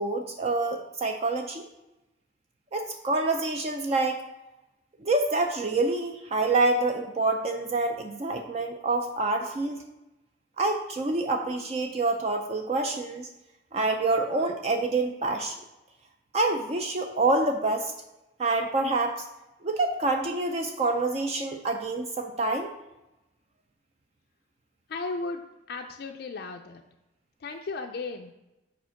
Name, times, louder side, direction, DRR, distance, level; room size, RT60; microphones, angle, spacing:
voice 1, 0.0-1.6 2.7-4.2 5.0-9.8 10.6-13.3 13.7-15.6 16.3-17.9 18.4-19.3 19.6-22.7, right 2 dB, 35° right, 4 dB, 0.4 m, -27 dB
voice 2, 24.9-26.8 27.4-28.3, left 3 dB, 55° left, 3 dB, 0.4 m, -35 dB
5.1 x 4.2 x 5.7 m, 0.98 s
head